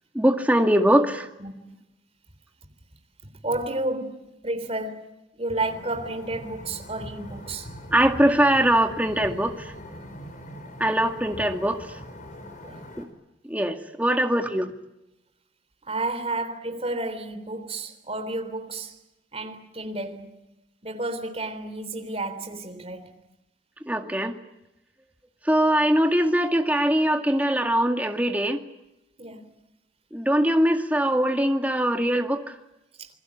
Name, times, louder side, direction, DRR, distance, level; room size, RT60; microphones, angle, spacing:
voice 1, 0.2-1.3 7.9-9.5 10.8-11.8 13.0-13.1 13.5-14.7 23.9-24.3 25.5-28.6 30.1-32.5, right 1 dB, 10° right, 2.1 m, -22 dB
voice 2, 3.4-5.1 5.4-7.7 12.6-12.8 15.9-19.0 19.3-20.4 20.8-23.2 29.2-29.5 33.0-33.1, right 2 dB, 30° right, 3.5 m, -31 dB
sound 1, 5.6-13.0, equal, 40° left, 5.3 m, -41 dB
28.0 x 21.5 x 8.7 m
head